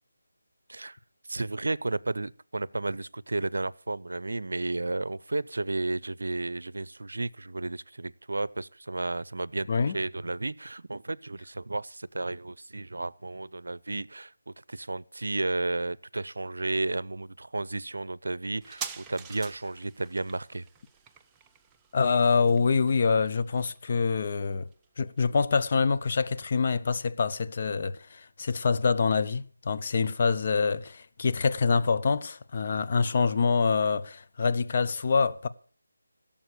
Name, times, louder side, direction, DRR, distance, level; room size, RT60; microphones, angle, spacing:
voice 1, 1.3-20.7 30.0-30.1, right 2 dB, 75° right, 0.6 m, -33 dB
sound 1, 18.6-25.7 26.0-26.1, right 6 dB, 10° right, 0.6 m, -46 dB
voice 2, 21.9-24.7 25.0-35.5, left 5 dB, 40° left, 0.9 m, -25 dB
17.0 x 7.3 x 6.8 m
figure-of-eight pair, 165°, 0 cm